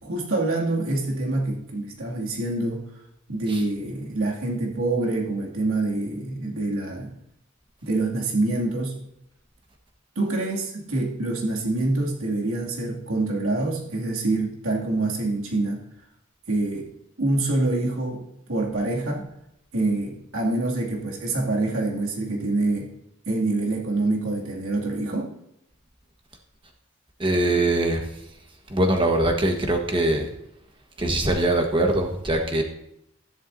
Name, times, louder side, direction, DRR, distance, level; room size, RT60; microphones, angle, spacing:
voice 1, 0.0-2.8 3.3-7.1 7.8-9.0 10.2-15.8 16.5-16.9 17.2-19.3 19.7-22.9 23.3-25.3, right 2 dB, 85° right, -1 dB, 2.5 m, -26 dB
voice 2, 27.2-28.0 28.7-30.3 31.0-32.6, right 1 dB, 25° right, 2 dB, 1.4 m, -22 dB
13.5 x 11.0 x 2.7 m, 0.78 s
head